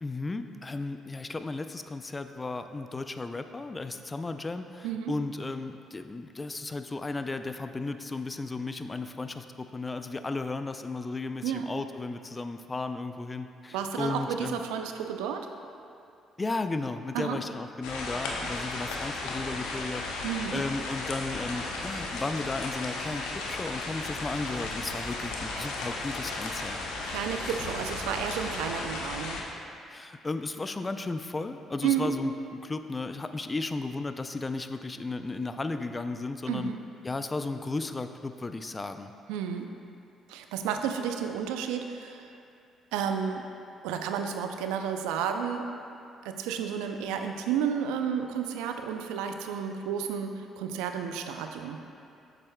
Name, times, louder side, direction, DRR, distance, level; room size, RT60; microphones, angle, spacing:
voice 1, 0.0-14.6 16.4-20.1 20.5-26.8 29.9-36.7 37.0-39.1, left 3 dB, 30° left, 8 dB, 0.4 m, -34 dB
voice 2, 13.7-15.5 17.1-17.4 20.2-20.6 27.0-29.4 31.8-32.1 36.5-36.8 39.3-39.7 40.3-42.3 42.9-43.5 43.8-45.7 46.2-51.8, right 8 dB, 80° right, 6 dB, 0.4 m, -31 dB
sound 1, 17.8-29.4, left 3 dB, 80° left, 0.6 m, -35 dB
sound 2, 23.9-29.3, equal, ahead, 1.2 m, -50 dB
7.5 x 7.5 x 2.2 m, 2.5 s
hypercardioid pair, 50°, 0 cm